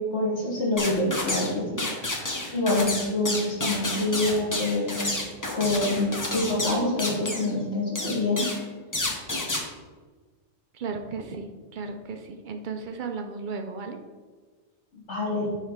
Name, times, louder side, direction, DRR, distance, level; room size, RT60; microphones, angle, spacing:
voice 1, 0.0-1.6 2.0-2.1 2.5-5.0 5.5-8.4 14.9-15.5, left 2 dB, 55° left, -5 dB, 1.6 m, -26 dB
sound 1, 0.8-1.5 1.8-7.5 7.9-8.6 8.9-9.6, left 2 dB, 20° left, 0.5 m, -30 dB
voice 2, 10.7-14.0, right 4 dB, 65° right, 5 dB, 0.5 m, -35 dB
9.1 x 3.1 x 3.6 m, 1.4 s
omnidirectional pair, 1.4 m